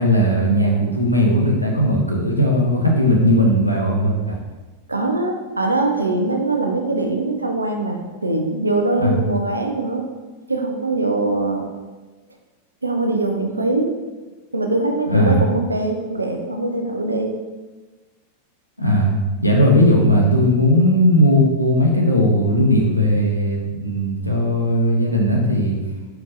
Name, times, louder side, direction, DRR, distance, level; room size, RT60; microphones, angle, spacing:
voice 1, 0.0-4.4 9.0-9.1 15.1-15.4 18.8-19.2 19.4-25.7, equal, 90° left, -1 dB, 0.6 m, -17 dB
voice 2, 4.9-10.0 10.5-11.7 12.8-13.9 14.5-17.3, right 2 dB, 80° right, 4 dB, 0.5 m, -22 dB
4.5 x 3.9 x 2.5 m, 1.3 s
figure-of-eight pair, 90°, 0 cm